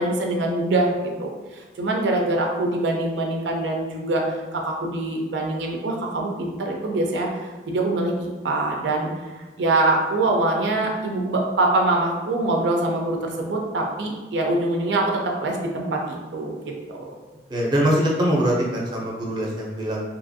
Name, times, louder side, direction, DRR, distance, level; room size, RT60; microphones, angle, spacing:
voice 1, 0.0-16.5 16.9-17.1, right 2 dB, 80° right, 1 dB, 0.4 m, -24 dB
voice 2, 17.5-20.0, equal, 25° right, -3 dB, 0.5 m, -22 dB
2.8 x 2.4 x 2.6 m, 1.3 s
head